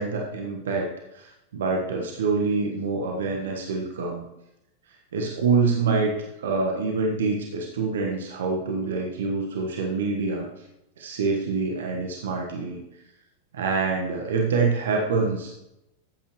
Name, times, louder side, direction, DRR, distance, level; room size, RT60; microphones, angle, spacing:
voice 1, 0.0-4.3 5.1-6.1 6.4-10.5 11.0-12.8 13.5-15.6, right 4 dB, 60° right, 1 dB, 1.4 m, -26 dB
13.0 x 8.7 x 3.1 m, 0.89 s
figure-of-eight pair, 90°, 0 cm